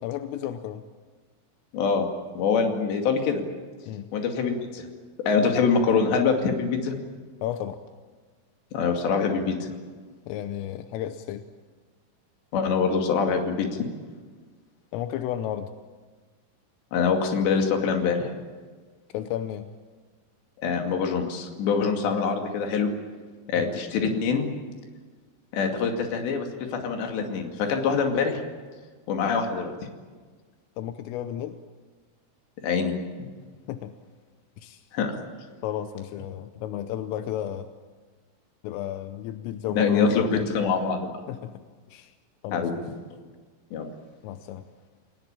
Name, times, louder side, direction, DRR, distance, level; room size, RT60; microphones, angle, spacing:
voice 1, 0.0-0.8 3.9-4.1 7.4-7.8 10.3-11.5 14.9-15.7 19.1-19.7 23.5-23.8 30.8-31.6 33.7-33.9 34.6-34.9 35.6-37.7 38.6-40.7 41.3-41.5 41.9-42.1 42.4-42.8 44.2-44.7, left 11 dB, 85° left, 9 dB, 3.5 m, -33 dB
voice 2, 1.7-2.1 2.4-3.4 4.1-4.9 5.3-7.0 8.7-9.7 12.5-13.9 16.9-18.3 20.6-22.9 23.5-24.5 25.5-28.4 29.1-29.7 32.6-32.9 34.9-35.1 39.7-41.1 42.5-42.7 43.7-43.9, left 5 dB, 65° left, 3 dB, 4.4 m, -24 dB
29.0 x 17.5 x 8.9 m, 1.5 s
omnidirectional pair, 5.7 m